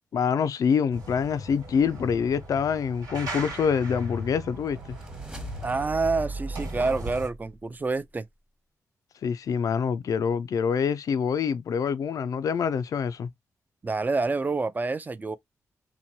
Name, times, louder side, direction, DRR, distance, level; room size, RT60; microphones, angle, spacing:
voice 1, 0.1-5.0 9.2-13.3, left 6 dB, 70° left, 0.3 m, -26 dB
sound 1, 0.9-7.3, equal, 85° right, 1.5 m, -38 dB
sound 2, 4.3-8.1, right 3 dB, 10° right, 1.0 m, -39 dB
voice 2, 5.6-8.3 13.8-15.4, right 3 dB, 30° right, 0.4 m, -27 dB
2.9 x 2.2 x 2.7 m
cardioid pair, 65°, 6 cm